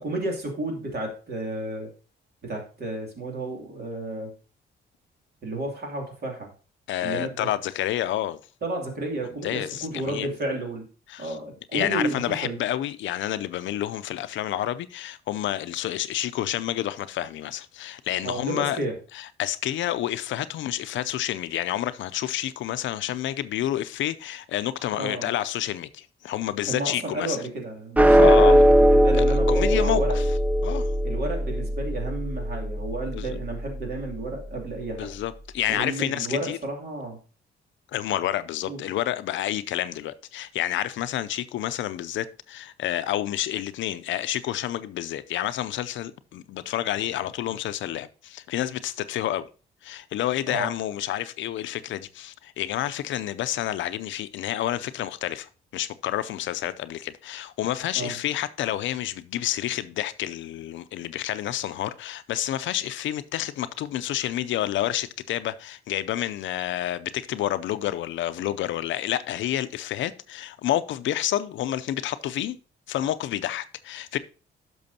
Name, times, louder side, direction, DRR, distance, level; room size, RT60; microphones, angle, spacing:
voice 1, 0.0-1.9 2.4-4.3 5.4-6.5 7.0-7.5 8.6-10.8 11.2-12.6 18.2-19.0 25.0-25.3 26.7-30.2 31.0-35.1 35.7-37.2 38.7-38.8 50.5-50.7 57.9-58.2, right 2 dB, 55° right, 2.9 m, -32 dB
voice 2, 6.9-8.4 9.4-10.3 11.1-11.4 11.7-18.8 19.1-27.4 28.2-28.5 29.2-30.2 30.6-30.9 33.1-33.4 35.0-36.6 37.9-49.5 49.8-72.6 72.9-74.2, left 12 dB, 75° left, 0.5 m, -29 dB
sound 1, 28.0-34.5, equal, 5° right, 0.4 m, -20 dB
10.5 x 6.2 x 2.8 m
cardioid pair, 90°, 20 cm